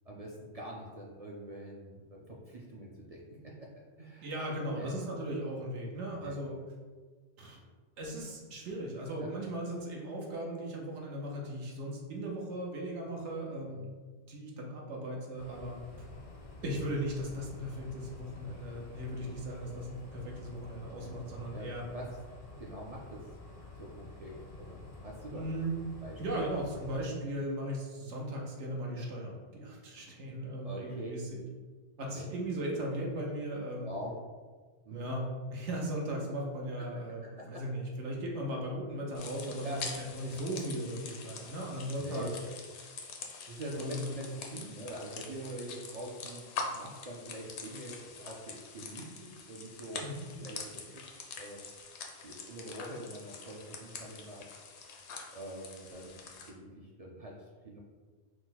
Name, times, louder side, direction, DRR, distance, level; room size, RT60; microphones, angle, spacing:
voice 1, 0.1-3.7 4.0-4.3 4.7-4.9 6.2-6.4 9.2-9.3 13.7-13.9 20.8-21.1 21.5-22.1 22.6-23.3 23.8-25.5 26.0-26.5 30.6-31.1 32.2-32.3 33.8-34.2 34.9-35.1 36.8-36.9 37.5-37.6 39.6-39.8 42.0-42.3 43.5-50.0 50.4-51.0 51.3-51.6 52.2-54.5 55.3-56.2 56.5-57.8, right 1 dB, 50° right, -3 dB, 0.4 m, -44 dB
voice 2, 4.2-6.6 7.4-7.6 8.0-13.8 14.3-15.8 16.6-21.8 25.3-25.7 26.2-31.4 32.0-33.9 34.9-35.2 35.5-42.3 43.8-44.1 50.0-50.3, right 1 dB, 80° right, -1 dB, 1.1 m, -37 dB
sound 1, 15.4-27.0, left 2 dB, 45° left, 0.5 m, -49 dB
sound 2, 39.2-56.5, left 4 dB, 75° left, 0.9 m, -45 dB
4.6 x 2.1 x 3.9 m, 1.4 s
omnidirectional pair, 1.2 m